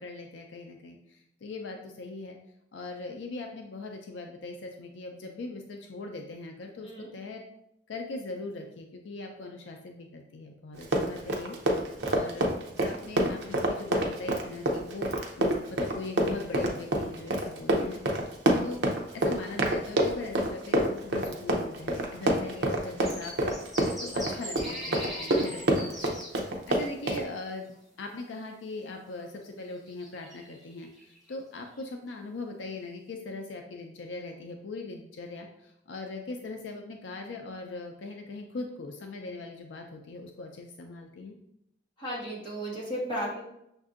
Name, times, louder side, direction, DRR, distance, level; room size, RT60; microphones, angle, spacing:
voice 1, 0.0-2.4 2.7-7.4 7.9-12.4 12.8-15.1 15.4-18.8 19.1-23.7 24.0-27.7 28.0-41.4, left 3 dB, 80° left, 3 dB, 0.4 m, -40 dB
Run, 10.8-27.3, right 1 dB, 65° right, 0.6 m, -27 dB
sound 1, 23.0-26.3 27.2-27.3 29.2-29.3 29.7-31.3 31.7-31.8, equal, ahead, 1.1 m, -41 dB
voice 2, 42.0-43.4, equal, 25° left, -7 dB, 1.6 m, -35 dB
6.4 x 2.6 x 2.4 m, 0.80 s
head